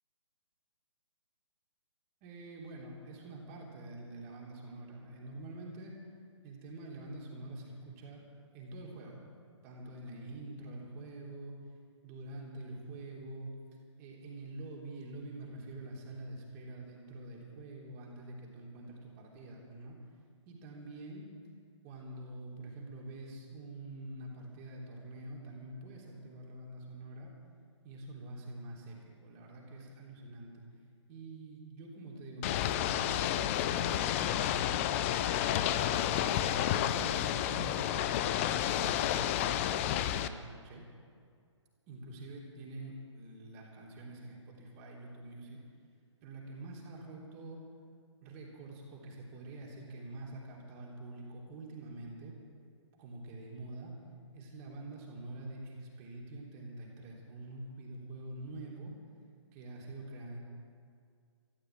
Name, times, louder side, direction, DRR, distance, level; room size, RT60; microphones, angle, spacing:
voice 1, 2.2-6.0 6.4-9.2 9.6-11.6 12.0-13.5 14.0-20.0 20.5-21.3 21.8-27.3 27.8-30.6 31.1-35.6 36.1-40.9 41.9-45.6 46.2-47.6 48.2-52.3 53.0-53.9 54.3-58.9 59.5-60.4, right 2 dB, 30° right, -2 dB, 3.5 m, -46 dB
Ocean / Boat Water vehicle, 32.4-40.3, left 11 dB, 25° left, 0.5 m, -31 dB
14.5 x 11.0 x 8.6 m, 2.2 s
figure-of-eight pair, 135°, 16 cm